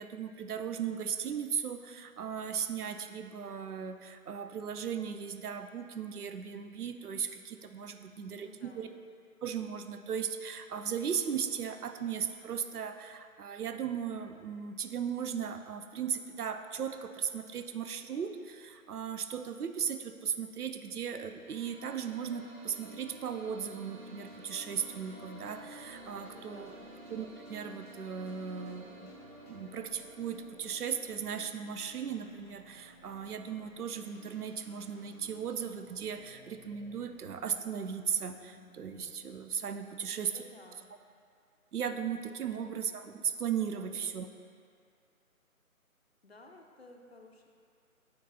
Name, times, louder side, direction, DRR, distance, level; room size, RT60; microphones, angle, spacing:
voice 1, 0.0-8.9 9.4-26.8 27.1-29.1 29.5-40.3 41.7-44.3, right 7 dB, 85° right, 8 dB, 0.6 m, -37 dB
voice 2, 8.3-8.9 26.2-26.9 40.0-41.0 42.4-42.6 43.8-43.9 46.2-47.5, left 2 dB, 45° left, 2 dB, 0.5 m, -55 dB
sound 1, 21.0-31.3, right 1 dB, 65° right, 1.2 m, -51 dB
sound 2, 24.3-39.4, left 2 dB, 90° left, 1.0 m, -58 dB
9.6 x 3.8 x 2.9 m, 2.3 s
figure-of-eight pair, 155°, 44 cm